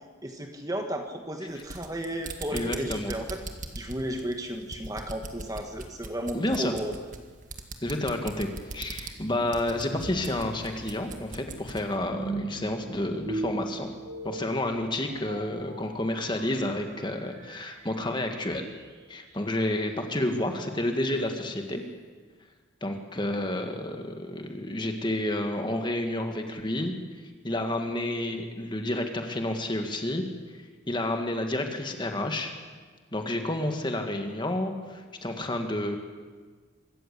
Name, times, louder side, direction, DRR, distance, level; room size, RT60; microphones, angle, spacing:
voice 1, 0.2-3.4 3.7-6.9, equal, 20° right, 4 dB, 1.4 m, -34 dB
sound 1, 1.5-11.9, right 3 dB, 40° right, 1.7 m, -41 dB
voice 2, 2.5-3.1 6.3-6.7 7.8-13.9 14.2-18.7 19.1-21.8 22.8-27.0 27.4-30.2 30.9-32.5 33.1-36.0, left 1 dB, 25° left, 4 dB, 1.9 m, -30 dB
sound 2, 10.0-19.1, right 2 dB, 75° right, 3.1 m, -40 dB
25.0 x 14.0 x 8.5 m, 1.5 s
head